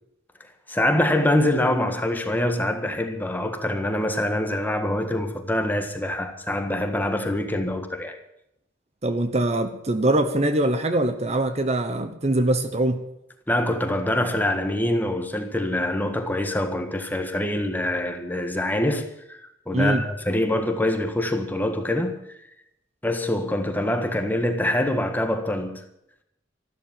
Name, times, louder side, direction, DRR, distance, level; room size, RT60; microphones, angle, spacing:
voice 1, 0.7-8.2 13.5-19.4 19.7-22.2 23.0-25.8, left 1 dB, 10° left, 1.5 m, -25 dB
voice 2, 9.0-13.1 19.7-20.0, right 1 dB, 35° right, 1.0 m, -23 dB
14.0 x 12.0 x 7.4 m
head